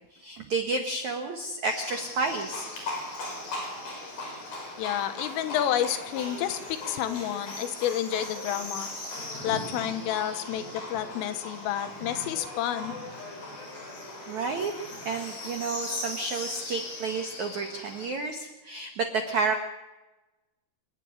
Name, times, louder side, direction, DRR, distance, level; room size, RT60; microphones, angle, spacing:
voice 1, 0.0-2.7 14.3-14.7 15.0-19.7, right 3 dB, 75° right, 5 dB, 1.7 m, -31 dB
Livestock farm animals working animals, 1.6-18.1, left 2 dB, 50° left, 7.2 m, -38 dB
voice 2, 4.8-8.9 9.4-13.0, left 11 dB, 90° left, 10 dB, 3.8 m, -30 dB
27.5 x 10.5 x 9.9 m, 1.1 s
omnidirectional pair, 5.7 m